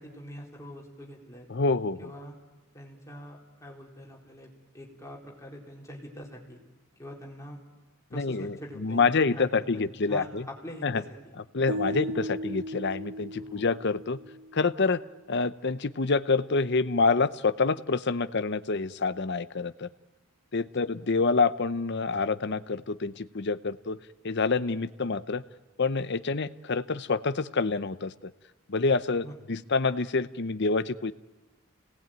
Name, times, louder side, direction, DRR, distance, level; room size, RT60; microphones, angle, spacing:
voice 1, 0.0-1.5 2.0-2.3 2.7-6.6 7.0-7.6 8.1-9.5 9.7-11.4 11.9-12.3 13.4-13.7 29.2-29.4, left 1 dB, 15° left, -2 dB, 4.1 m, -44 dB
voice 2, 1.5-2.1 8.1-10.4 10.8-11.0 11.5-14.2 14.5-15.0 15.3-19.9 20.5-24.0 24.2-25.4 25.8-28.3 28.7-31.1, left 4 dB, 50° left, 14 dB, 0.8 m, -27 dB
sound 1, 11.7-14.8, equal, 70° right, 2.0 m, -36 dB
29.0 x 19.0 x 9.0 m, 1.2 s
head